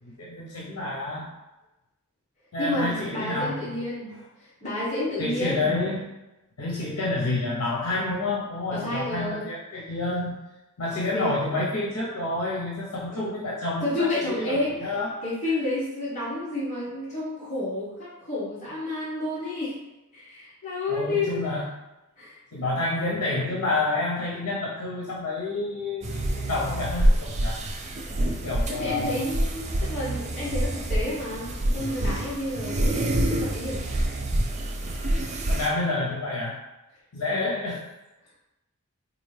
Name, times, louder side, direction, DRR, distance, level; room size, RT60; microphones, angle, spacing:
voice 1, 0.0-1.3 2.5-3.8 5.2-6.1 6.6-10.4 10.8-15.2 20.9-21.7 22.5-27.6 28.3-29.2 35.5-36.6 37.1-37.8, left 2 dB, 85° left, -5 dB, 0.7 m, -29 dB
voice 2, 2.6-5.8 8.7-9.5 11.1-11.3 13.1-13.2 13.8-14.7 15.2-19.7 20.1-21.4 22.2-22.4 28.2-28.3 28.7-33.8 37.3-37.5, left 2 dB, 35° left, -10 dB, 1.1 m, -30 dB
sound 1, 26.0-35.7, right 1 dB, 30° right, 0.4 m, -27 dB
4.1 x 2.5 x 3.2 m, 1.0 s
head